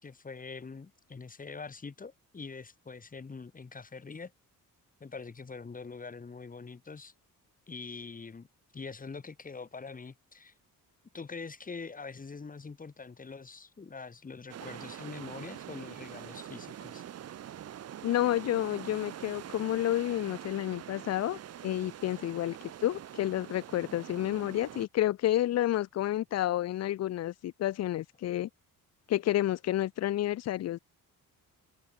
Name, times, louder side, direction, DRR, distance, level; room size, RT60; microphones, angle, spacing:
voice 1, 0.0-4.3 5.0-7.1 7.7-8.5 8.7-10.5 11.1-17.0, left 4 dB, 25° left, 3.1 m, -44 dB
sound 1, 14.5-24.9, right 10 dB, 45° right, 0.8 m, -45 dB
voice 2, 18.0-22.6 22.8-28.5 29.1-30.8, left 13 dB, 50° left, 0.5 m, -30 dB
open air
cardioid pair, 160°, 35 cm